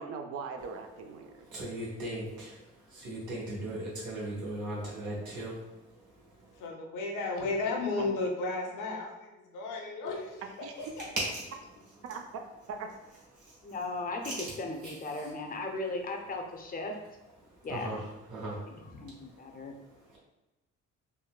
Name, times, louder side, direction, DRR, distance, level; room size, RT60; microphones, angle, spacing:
voice 1, 0.0-1.5 8.0-8.1 10.6-10.7 12.0-12.2 12.7-12.9, right 5 dB, 55° right, 4 dB, 0.4 m, -40 dB
voice 2, 1.5-2.6 2.9-5.6 13.4-13.5 14.2-14.3 14.8-14.9 17.7-18.0 18.3-18.6, right 1 dB, 75° right, -6 dB, 1.0 m, -37 dB
voice 3, 6.6-10.4 10.8-11.1, left 3 dB, 85° left, 0 dB, 0.7 m, -34 dB
voice 4, 13.6-16.9 17.6-18.1 18.7-19.7, left 2 dB, 30° left, 3 dB, 0.5 m, -37 dB
3.9 x 2.1 x 2.3 m, 1.0 s
cardioid pair, 90°, 30 cm